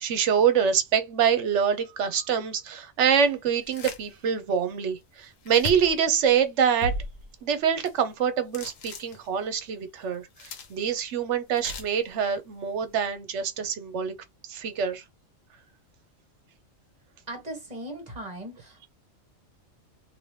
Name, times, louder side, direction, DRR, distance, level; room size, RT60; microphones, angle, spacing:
voice 1, 0.0-6.9 7.4-14.1 14.5-15.0, right 7 dB, 65° right, 1.0 m, -25 dB
sound 1, 3.6-4.1 4.5-4.6 5.4-6.0 6.8-7.4 7.9-8.1 8.5-9.5 10.1-11.0 11.6-12.1, left 2 dB, 75° left, 1.2 m, -36 dB
voice 2, 17.3-18.9, right 1 dB, 35° right, 1.1 m, -38 dB
2.8 x 2.8 x 3.2 m
omnidirectional pair, 1.4 m